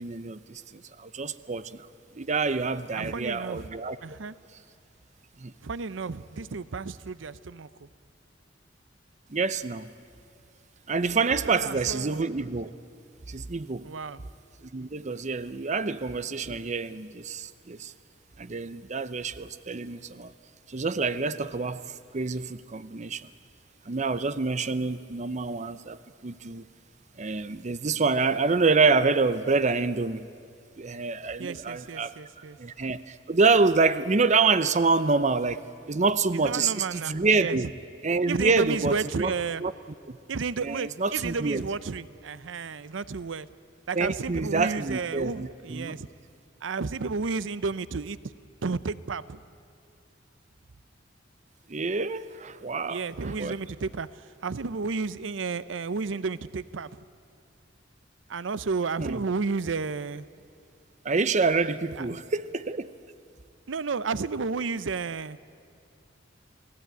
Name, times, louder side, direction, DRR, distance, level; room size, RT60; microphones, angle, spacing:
voice 1, 0.0-1.9 2.2-4.0 5.4-5.5 9.3-9.9 10.9-12.7 13.3-13.9 14.6-17.9 18.4-20.3 20.7-23.3 23.9-26.6 27.2-30.3 30.8-32.1 32.6-35.6 35.9-37.7 38.0-39.3 39.6-39.7 40.1-40.2 40.6-41.6 43.9-46.0 51.7-53.6 59.0-59.2 61.0-62.9, right 4 dB, 40° right, 14 dB, 0.7 m, -27 dB
voice 2, 2.9-3.7 4.0-4.3 5.6-7.9 11.4-12.2 13.8-14.2 31.4-32.6 36.3-37.6 38.3-39.6 40.3-43.5 43.9-46.1 46.6-48.2 48.6-49.4 52.9-57.0 58.3-60.2 62.0-62.1 63.7-65.4, right 4 dB, 90° right, 16 dB, 0.6 m, -32 dB
29.0 x 18.5 x 9.2 m, 2.5 s
head